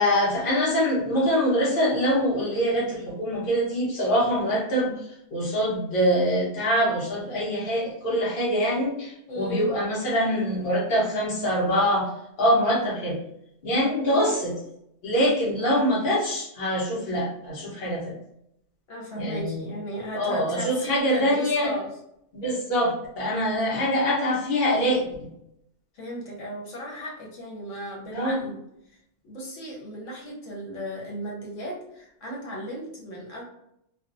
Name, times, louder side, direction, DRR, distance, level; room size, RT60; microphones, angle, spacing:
voice 1, 0.0-4.9 5.3-12.1 12.4-13.2 13.6-14.5 15.0-18.1 19.2-19.7 20.1-21.7 22.3-25.3 28.1-28.4, equal, 50° left, -5 dB, 1.0 m, -24 dB
voice 2, 9.3-9.7 14.0-14.3 18.9-21.9 23.6-23.8 25.9-28.6 29.2-33.4, equal, 85° left, -2 dB, 1.1 m, -35 dB
2.5 x 2.2 x 2.5 m, 0.76 s
omnidirectional pair, 1.2 m